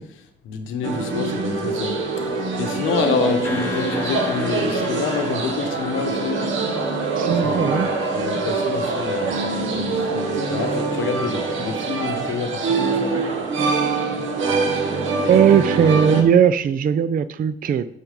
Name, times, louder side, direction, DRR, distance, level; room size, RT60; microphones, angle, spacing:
voice 1, 0.4-2.0 2.6-6.4 7.3-7.8 8.1-13.2, left 5 dB, 85° left, 6 dB, 1.2 m, -27 dB
sound 1, 0.8-16.2, right 3 dB, 75° right, 1.6 m, -24 dB
sound 2, 3.4-6.9, left 5 dB, 10° left, 1.0 m, -35 dB
voice 2, 7.2-7.9 15.3-17.9, right 8 dB, 45° right, 14 dB, 0.4 m, -18 dB
12.0 x 4.6 x 5.3 m, 0.79 s
cardioid pair, 90°, 20 cm